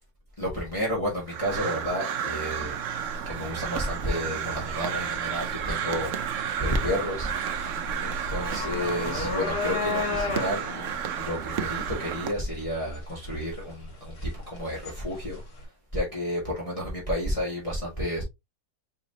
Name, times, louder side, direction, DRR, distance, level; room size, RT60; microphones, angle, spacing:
voice 1, 0.4-2.8 3.3-15.4 15.9-18.2, equal, 20° left, 1.7 m, -31 dB
Crow, 1.3-12.3, right 8 dB, 60° right, 0.9 m, -32 dB
sound 1, 2.5-15.6, left 3 dB, 75° left, 2.0 m, -35 dB
4.8 x 4.0 x 2.7 m
omnidirectional pair, 1.7 m